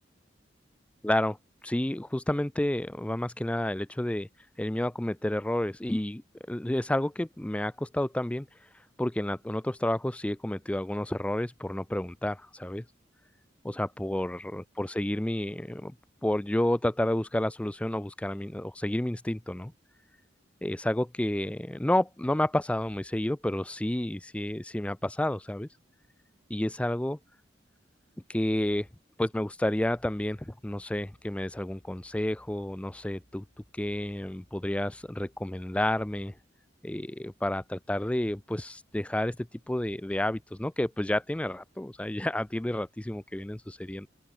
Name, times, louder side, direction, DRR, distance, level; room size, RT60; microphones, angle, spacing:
voice 1, 1.0-1.4 1.6-4.3 4.6-6.2 6.5-8.5 9.0-12.8 13.6-15.9 16.2-19.7 20.6-25.7 26.5-27.2 28.3-28.9 29.2-33.4 33.7-36.3 36.8-39.4 39.7-44.1, left 1 dB, 5° left, 0.4 m, -30 dB
open air
head